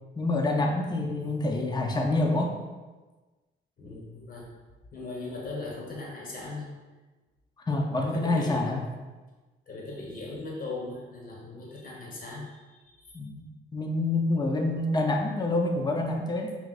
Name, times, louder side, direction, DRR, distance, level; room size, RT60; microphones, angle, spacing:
voice 1, 0.2-2.5 7.6-8.8 13.1-13.4 13.7-16.6, left 2 dB, 20° left, 2 dB, 0.6 m, -27 dB
voice 2, 1.0-1.3 3.8-4.5 4.9-6.7 8.0-8.7 9.7-13.2, left 2 dB, 45° left, -3 dB, 1.2 m, -39 dB
5.8 x 2.4 x 2.5 m, 1.2 s
cardioid pair, 90°, 20 cm